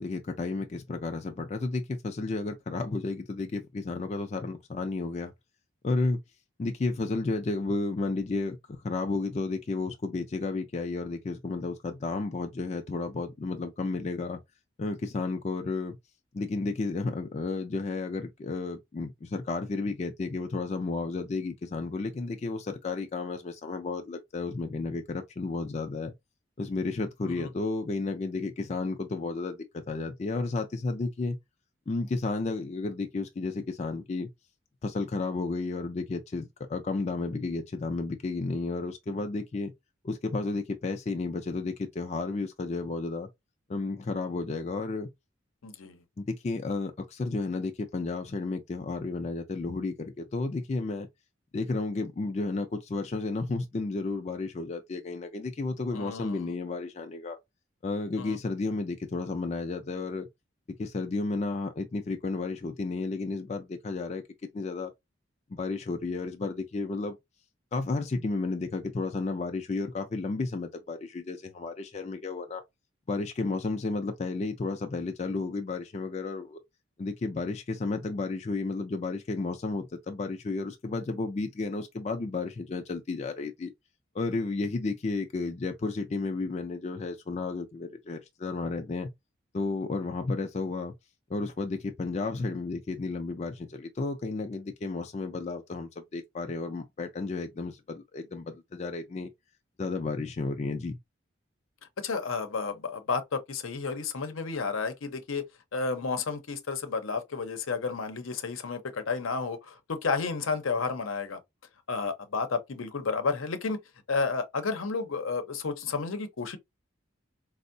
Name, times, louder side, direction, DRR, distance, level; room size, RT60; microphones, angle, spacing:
voice 1, 0.0-5.3 5.8-6.2 6.6-14.4 14.8-16.0 16.3-26.1 26.6-31.4 31.9-34.3 34.8-39.7 40.0-43.3 43.7-45.1 46.2-51.1 51.5-57.4 57.8-60.3 60.8-64.2 64.5-64.9 65.5-67.2 67.7-72.6 73.1-76.6 77.0-83.7 84.1-89.1 89.5-90.9 91.3-99.3 99.8-101.0, left 3 dB, 30° left, 0.3 m, -32 dB
voice 2, 45.6-46.0 55.9-56.5 58.2-58.4 102.0-105.4 105.7-111.4 111.9-113.8 114.1-116.6, left 4 dB, 80° left, 0.7 m, -31 dB
4.3 x 2.1 x 2.6 m
head